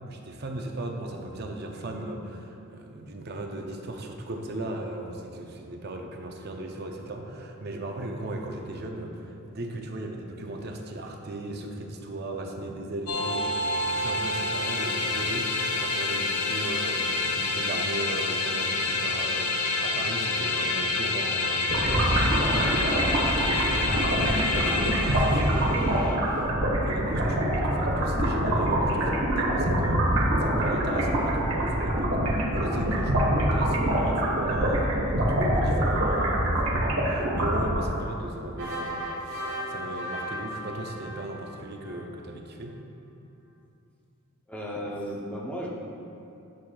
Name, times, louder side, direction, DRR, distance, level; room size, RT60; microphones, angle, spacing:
voice 1, 0.0-39.2 39.7-42.8, right 1 dB, 45° right, 2 dB, 0.6 m, -37 dB
sound 1, 13.1-26.2, left 3 dB, 80° left, 0.7 m, -28 dB
sound 2, 21.7-38.1, right 1 dB, 70° right, 1.3 m, -25 dB
sound 3, 38.6-42.0, equal, 85° right, 1.4 m, -36 dB
voice 2, 44.5-45.7, equal, 5° left, -4 dB, 0.7 m, -34 dB
10.5 x 6.4 x 2.3 m, 2.7 s
head